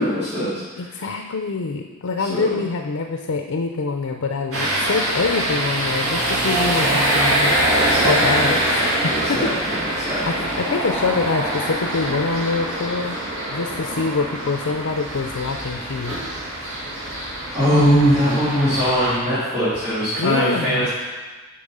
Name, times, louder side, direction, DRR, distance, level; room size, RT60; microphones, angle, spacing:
voice 1, 0.0-0.6 2.2-2.5 7.7-8.5 9.1-9.5 10.0-10.5 17.5-20.9, equal, 10° right, -16 dB, 3.1 m, -21 dB
voice 2, 0.8-7.6 8.0-9.5 9.9-13.2 13.5-16.2 20.2-20.9, left 4 dB, 90° left, 4 dB, 0.6 m, -25 dB
sound 1, 4.5-19.2, right 1 dB, 90° right, 2.5 m, -23 dB
8.6 x 5.4 x 5.5 m, 1.3 s
head